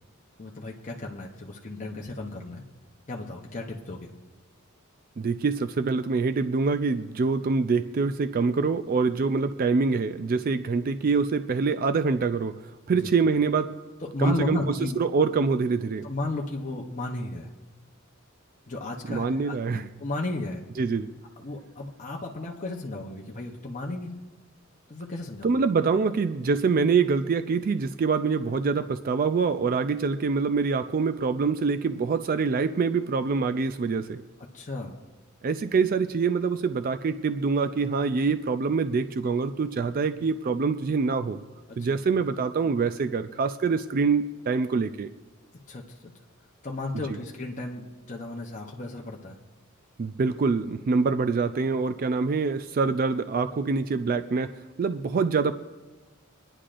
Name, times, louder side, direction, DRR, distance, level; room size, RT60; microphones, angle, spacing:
voice 1, 0.4-2.6 3.1-4.1 12.9-13.1 14.0-15.0 16.0-17.5 18.7-20.6 21.4-24.2 24.9-25.6 34.4-35.0 41.7-42.0 45.7-46.1 46.6-49.4, left 2 dB, 35° left, -1 dB, 0.7 m, -34 dB
voice 2, 5.2-12.5 12.9-13.7 14.2-14.6 15.0-16.1 19.1-19.9 20.8-21.1 25.4-34.2 35.4-41.4 41.8-45.1 50.0-55.5, right 4 dB, 45° right, 11 dB, 0.3 m, -25 dB
24.0 x 9.9 x 2.5 m, 1.2 s
head